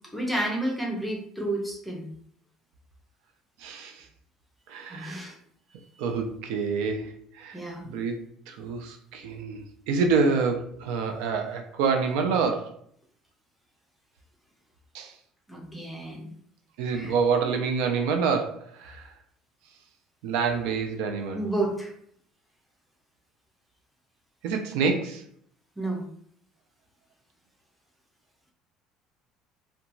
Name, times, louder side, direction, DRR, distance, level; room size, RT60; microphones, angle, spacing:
voice 1, 0.1-2.1 4.9-5.3 7.5-7.8 15.5-16.3 16.9-17.1 21.3-21.9 25.8-26.0, right 1 dB, 5° left, -2 dB, 0.6 m, -30 dB
voice 2, 3.6-4.0 4.7-5.3 6.0-7.6 7.8-8.2 8.5-12.8 14.9-15.1 16.8-19.1 20.2-21.4 24.4-25.2, right 5 dB, 85° right, 4 dB, 0.4 m, -27 dB
2.8 x 2.2 x 2.6 m, 0.64 s
cardioid pair, 140°, 0 cm